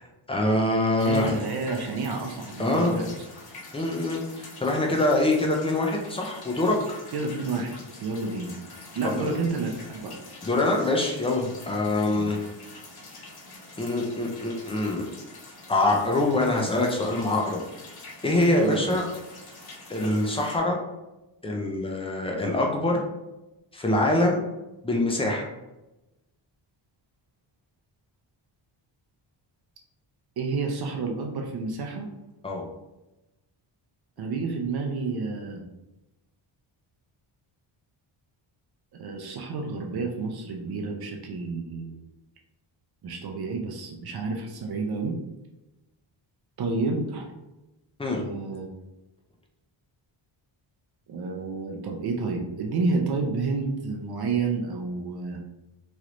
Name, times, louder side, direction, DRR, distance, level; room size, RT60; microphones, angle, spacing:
voice 1, 0.3-1.4 2.6-3.0 3.7-4.2 4.6-7.0 9.2-9.4 10.4-12.4 13.8-15.0 15.7-17.6 18.2-19.0 19.9-20.8 21.4-23.0 23.7-24.4 24.8-25.5 32.4-32.7 48.0-48.2, left 2 dB, 15° left, 0 dB, 0.3 m, -24 dB
sound 1, 1.0-20.6, left 2 dB, 50° left, 0.8 m, -45 dB
voice 2, 1.0-3.1 7.1-8.5 9.0-10.1 12.1-12.3 18.6-18.9 30.4-32.1 34.2-35.6 38.9-42.0 43.0-45.2 46.6-47.3 48.1-48.7 51.1-55.4, right 4 dB, 55° right, 1 dB, 0.5 m, -30 dB
3.1 x 2.9 x 2.5 m, 0.99 s
wide cardioid pair, 175°, 47 cm